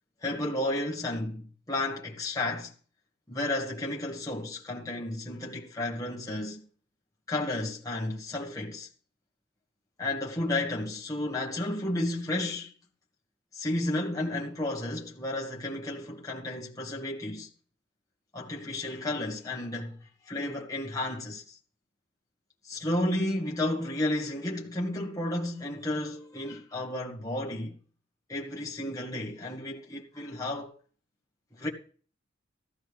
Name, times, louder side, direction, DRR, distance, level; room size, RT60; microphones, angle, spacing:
voice 1, 0.2-2.7 3.3-6.7 7.3-8.9 10.0-12.7 13.5-17.5 18.3-21.6 22.6-27.8 28.3-30.7 31.5-31.7, left 1 dB, 15° left, 1.7 m, -32 dB
14.5 x 13.0 x 3.4 m
head